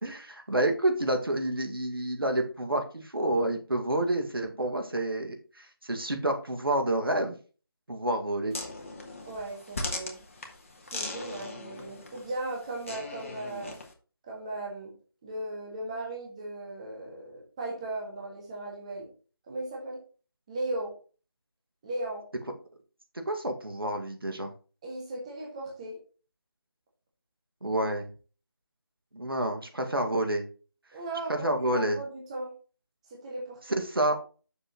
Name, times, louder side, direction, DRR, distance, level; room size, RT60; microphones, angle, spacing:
voice 1, 0.0-7.4 7.9-8.5 23.1-24.5 27.6-28.1 29.1-30.5 31.3-32.0 33.8-34.1, right 1 dB, 70° right, 5 dB, 1.9 m, -29 dB
sound 1, 8.5-13.9, left 2 dB, 35° left, 1.5 m, -39 dB
voice 2, 9.2-10.2 10.8-13.8 14.2-14.9 15.2-19.1 19.5-20.0 20.5-20.9 21.8-22.2 24.8-26.0 30.9-32.5 33.1-33.8, right 2 dB, 15° right, -2 dB, 1.6 m, -37 dB
8.4 x 6.7 x 3.0 m, 0.37 s
figure-of-eight pair, 165°, 13 cm